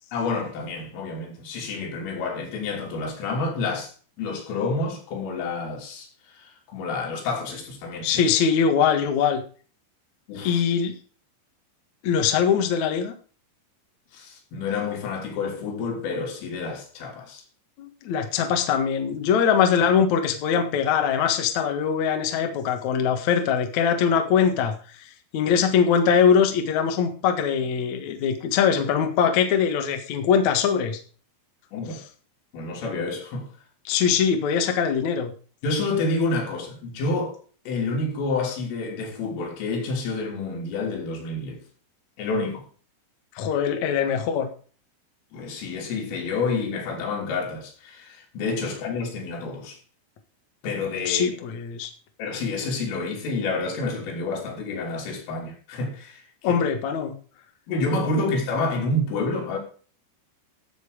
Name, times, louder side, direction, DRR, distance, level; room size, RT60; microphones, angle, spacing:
voice 1, 0.1-3.9 4.2-6.1 6.3-8.2 10.3-10.6 14.1-17.4 31.7-32.0 32.5-33.5 35.6-37.4 37.7-41.6 42.2-42.6 45.3-49.8 50.6-51.3 52.2-56.6 57.7-59.6, left 3 dB, 85° left, 5.9 m, -29 dB
voice 2, 8.0-9.4 10.4-11.0 12.0-13.1 17.8-24.7 25.3-31.0 33.9-35.3 43.4-44.5 51.1-51.9 56.4-57.1 58.2-58.3, left 7 dB, 60° left, 2.0 m, -22 dB
14.0 x 8.0 x 5.0 m
omnidirectional pair, 5.7 m